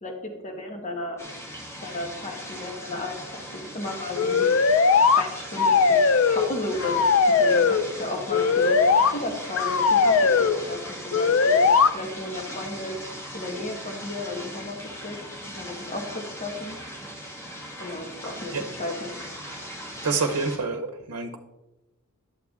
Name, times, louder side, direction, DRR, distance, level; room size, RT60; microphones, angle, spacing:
voice 1, 0.0-1.2 1.8-4.5 5.1-6.0 6.3-8.8 9.1-11.6 11.9-13.0 13.3-14.8 15.0-15.2 15.5-16.8 17.8-19.1, left 2 dB, 30° left, 2 dB, 1.3 m, -34 dB
sound 1, 1.2-20.6, equal, 10° left, 1.8 m, -39 dB
sound 2, 4.2-5.2 5.6-6.5 6.8-7.8 8.3-9.1 9.6-10.6 11.1-11.9, left 5 dB, 60° left, 0.5 m, -19 dB
voice 2, 20.0-21.4, right 4 dB, 85° right, 4 dB, 0.8 m, -27 dB
11.5 x 7.0 x 3.6 m, 1.1 s
head